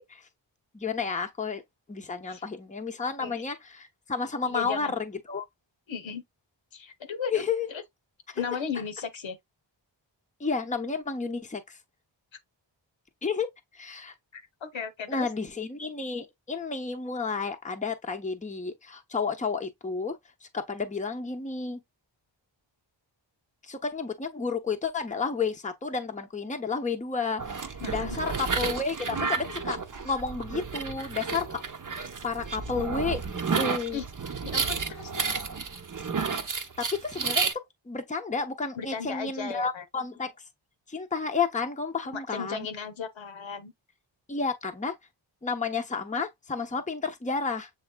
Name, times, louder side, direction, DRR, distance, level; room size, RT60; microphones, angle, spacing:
voice 1, 0.7-1.6 1.9-5.4 7.3-7.7 8.3-8.4 10.4-11.8 13.2-13.5 13.7-14.1 15.1-20.2 20.4-21.8 23.6-29.8 30.0-31.6 32.2-34.0 36.8-37.5 37.9-40.3 40.9-42.7 44.3-44.9 45.4-47.7, left 4 dB, 15° left, 0.7 m, -31 dB
voice 2, 4.5-4.9 5.9-6.2 6.7-7.3 7.7-7.8 8.3-9.4 14.3-15.3 27.8-28.4 33.9-34.0 34.4-35.4 38.8-39.8 42.1-43.7, left 6 dB, 75° left, 0.9 m, -36 dB
sound 1, 27.4-37.5, right 5 dB, 45° right, 0.8 m, -31 dB
7.1 x 3.1 x 2.2 m
wide cardioid pair, 85°, 46 cm